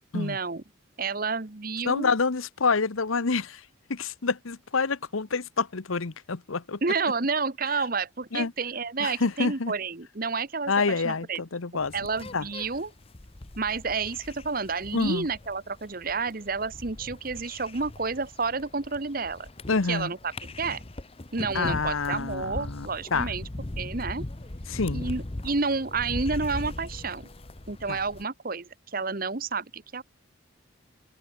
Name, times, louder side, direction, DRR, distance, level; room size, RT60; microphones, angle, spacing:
voice 1, 0.1-0.6 1.0-2.1 6.8-11.4 11.9-12.9 13.6-19.5 19.9-20.3 20.6-20.8 21.3-23.5 23.8-24.2 24.9-27.3 27.7-30.0, right 4 dB, 45° right, 1.1 m, -30 dB
voice 2, 1.8-3.6 3.9-6.8 8.3-8.5 9.0-9.7 10.7-11.9 12.3-12.4 14.9-15.3 19.7-20.1 21.5-23.3 24.7-25.0 27.9-28.0, left 4 dB, 85° left, 1.0 m, -27 dB
sound 1, 11.8-28.2, left 1 dB, 30° left, 0.9 m, -39 dB
head